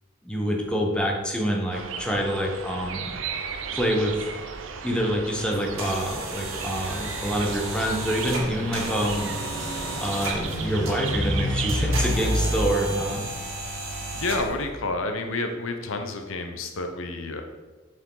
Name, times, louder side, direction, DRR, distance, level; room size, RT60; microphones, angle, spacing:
voice 1, 0.2-3.1 3.7-4.1 4.8-9.4 10.0-13.2, equal, 5° left, 0 dB, 1.0 m, -26 dB
sound 1, 1.7-12.1, right 5 dB, 70° right, 0.6 m, -36 dB
sound 2, 5.5-14.7, right 2 dB, 85° right, 2.1 m, -34 dB
Truck / Idling, 6.5-12.6, equal, 15° right, 2.1 m, -30 dB
voice 2, 14.2-17.4, left 3 dB, 75° left, 6 dB, 0.8 m, -29 dB
7.4 x 6.3 x 3.9 m, 1.2 s
head